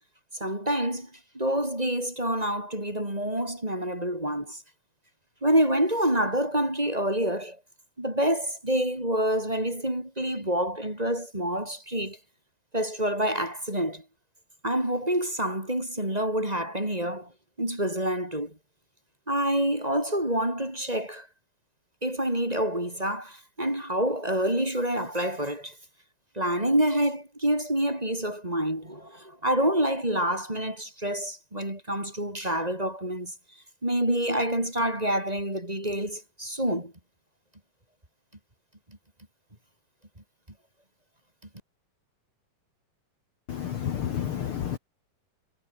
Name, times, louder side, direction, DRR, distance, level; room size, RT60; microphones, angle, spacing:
voice 1, 0.4-1.1 1.3-4.6 5.4-7.6 8.0-12.2 12.7-14.0 14.6-17.3 17.6-18.6 19.3-21.3 22.0-25.7 26.3-33.3 33.8-36.9, right 1 dB, 10° right, 4.2 m, -27 dB
voice 2, 43.5-44.8, left 9 dB, 55° left, 1.6 m, -30 dB
omnidirectional pair, 4.0 m